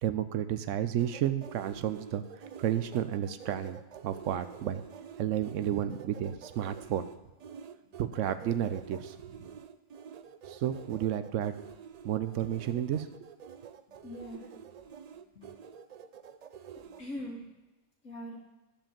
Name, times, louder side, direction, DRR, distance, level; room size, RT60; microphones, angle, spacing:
voice 1, 0.0-2.2 2.6-4.8 5.2-7.1 8.0-9.1 10.5-11.5 12.0-13.1, right 10 dB, 85° right, 11 dB, 0.9 m, -31 dB
sound 1, 1.0-17.0, right 7 dB, 65° right, 0.4 m, -48 dB
voice 2, 13.9-14.5 15.3-15.5 17.0-17.5 18.0-18.4, equal, 85° left, -6 dB, 2.0 m, -41 dB
11.5 x 5.2 x 7.3 m, 1.1 s
omnidirectional pair, 1.3 m